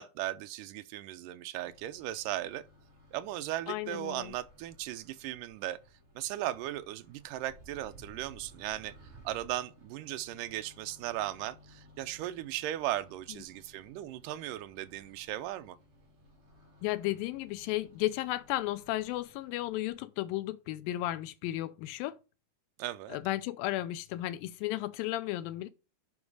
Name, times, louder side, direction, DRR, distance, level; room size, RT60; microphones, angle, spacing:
voice 1, 0.0-2.6 3.1-5.8 6.2-8.9 9.2-15.8 22.8-23.2, right 14 dB, 80° right, 2.0 m, -37 dB
Microwave oven, 1.6-19.9, equal, 40° right, 3.2 m, -58 dB
voice 2, 3.7-4.3 16.8-22.2 23.1-25.7, left 16 dB, 85° left, 2.3 m, -34 dB
7.2 x 5.3 x 4.8 m
omnidirectional pair, 4.2 m